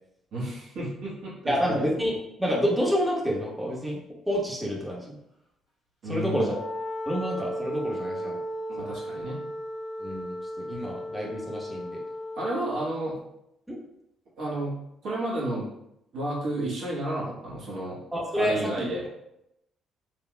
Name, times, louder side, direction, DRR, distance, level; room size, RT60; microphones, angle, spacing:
voice 1, 0.3-1.8 6.0-6.5 8.7-9.4 12.3-13.2 14.4-14.8 15.0-15.7 16.1-18.0 18.3-19.1, right 1 dB, 55° right, -6 dB, 1.5 m, -31 dB
voice 2, 1.5-4.0 4.3-5.2 6.0-6.6 7.1-8.4 8.8-8.9 10.0-12.0 13.7-13.8 18.1-19.1, equal, 5° right, -4 dB, 1.3 m, -28 dB
Wind instrument woodwind instrument, 6.4-12.7, equal, 60° left, 1.3 m, -35 dB
4.4 x 2.8 x 2.3 m, 0.81 s
figure-of-eight pair, 45°, 0 cm